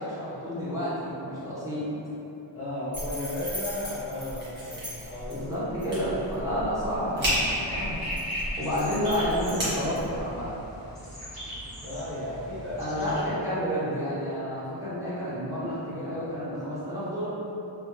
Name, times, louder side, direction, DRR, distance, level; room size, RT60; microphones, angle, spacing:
voice 1, 0.0-1.9 5.3-8.0 8.6-10.5 12.8-17.3, equal, 5° right, -13 dB, 0.9 m, -30 dB
voice 2, 2.5-5.5 11.8-13.1, left 1 dB, 30° left, -11 dB, 0.5 m, -34 dB
sound 1, 2.9-10.3, equal, 25° right, 1.4 m, -34 dB
sound 2, 7.3-13.2, equal, 15° left, 1.3 m, -38 dB
3.4 x 2.3 x 2.9 m, 2.9 s
wide cardioid pair, 165°, 46 cm